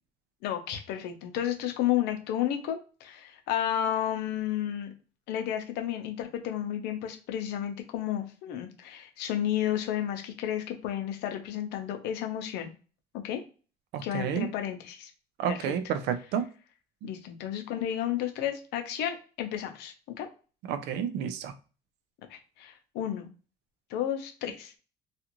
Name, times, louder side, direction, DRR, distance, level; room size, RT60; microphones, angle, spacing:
voice 1, 0.4-4.9 5.3-12.7 13.1-13.4 14.0-15.1 15.5-15.6 17.0-20.3 22.3-23.3 23.9-24.8, left 11 dB, 90° left, 5 dB, 0.6 m, -32 dB
voice 2, 13.9-14.5 15.4-16.4 20.7-21.5, right 8 dB, 85° right, 11 dB, 0.4 m, -30 dB
2.4 x 2.4 x 2.9 m, 0.36 s
cardioid pair, 110°, 17 cm